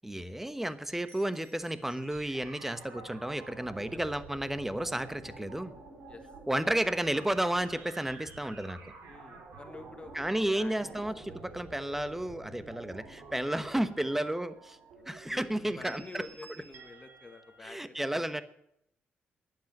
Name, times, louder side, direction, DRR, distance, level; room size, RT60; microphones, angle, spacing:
voice 1, 0.0-5.7 6.5-8.8 10.1-14.8 15.1-16.2 17.6-18.4, right 1 dB, 5° right, 12 dB, 1.1 m, -32 dB
sound 1, 0.7-17.6, right 3 dB, 80° right, 4.4 m, -50 dB
voice 2, 3.8-4.1 6.1-6.2 9.1-11.6 13.7-14.1 15.3-18.4, left 3 dB, 30° left, 7 dB, 1.8 m, -50 dB
11.5 x 10.5 x 9.0 m, 0.77 s
cardioid pair, 85°, 4 cm